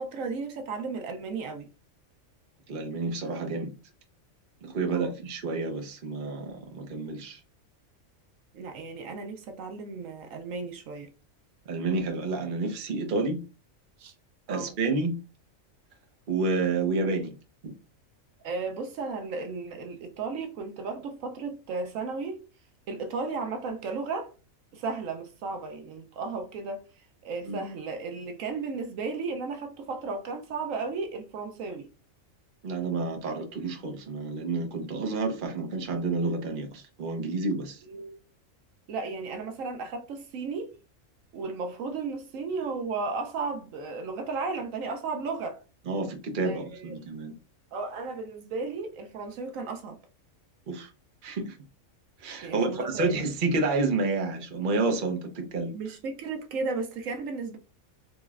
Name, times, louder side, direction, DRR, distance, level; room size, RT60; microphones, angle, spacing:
voice 1, 0.0-1.7 4.9-5.1 8.5-11.1 14.0-14.1 14.5-14.7 18.4-22.4 22.9-24.3 24.7-26.8 27.2-31.9 37.9-38.2 38.9-40.7 41.3-45.6 46.4-46.9 47.7-50.0 52.4-53.2 55.7-57.6, right 4 dB, 75° right, 1.0 m, -34 dB
voice 2, 2.7-3.7 4.6-7.4 11.7-13.4 14.5-15.2 16.3-17.4 17.6-17.7 27.4-27.6 32.6-37.8 45.9-47.3 50.7-50.9 51.2-51.6 52.2-55.7, right 3 dB, 45° right, 0.8 m, -29 dB
3.9 x 3.0 x 2.3 m
omnidirectional pair, 1.4 m